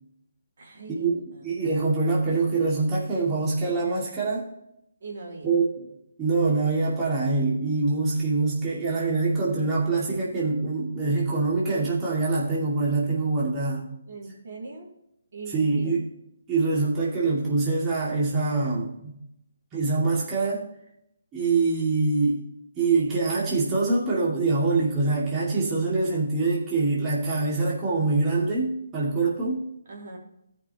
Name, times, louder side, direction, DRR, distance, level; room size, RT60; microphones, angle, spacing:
voice 1, 0.6-1.5 5.0-5.5 14.1-14.9 15.3-16.0 29.9-30.2, right 3 dB, 60° right, -2 dB, 3.4 m, -40 dB
voice 2, 1.4-4.5 5.4-5.9 6.2-13.9 15.5-16.0 16.5-19.2 19.7-20.7 21.3-22.5 22.8-29.7, right 3 dB, 20° right, -6 dB, 2.5 m, -24 dB
16.5 x 5.8 x 3.1 m, 0.79 s
figure-of-eight pair, 145°, 0 cm